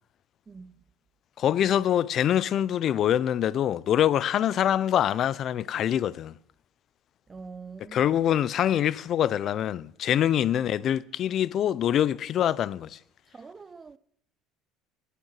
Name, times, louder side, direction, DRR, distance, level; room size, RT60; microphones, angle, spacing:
voice 1, 1.4-6.3 7.9-13.0, left 10 dB, 50° left, 0.4 m, -25 dB
voice 2, 7.3-8.2 13.3-14.0, right 4 dB, 20° right, 0.4 m, -44 dB
10.5 x 8.2 x 7.6 m
cardioid pair, 115°, 0 cm